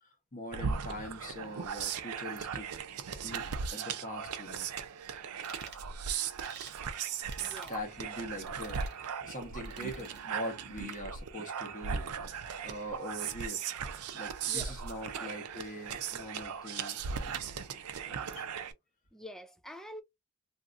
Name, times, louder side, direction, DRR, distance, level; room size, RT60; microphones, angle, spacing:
voice 1, 0.0-2.7 3.2-4.7 7.7-13.6 14.1-17.3 18.0-18.5, left 1 dB, 35° left, 1.1 m, -43 dB
sound 1, 0.5-18.7, right 7 dB, 85° right, 0.5 m, -38 dB
sound 2, 5.4-5.8 6.4-6.8 7.3-7.8 8.5-9.0 9.6-10.2, right 5 dB, 50° right, 0.9 m, -49 dB
voice 2, 7.4-7.7 14.4-14.8 15.1-15.3 18.0-18.4 19.1-20.0, left 1 dB, ahead, 0.3 m, -47 dB
2.9 x 2.5 x 2.4 m
head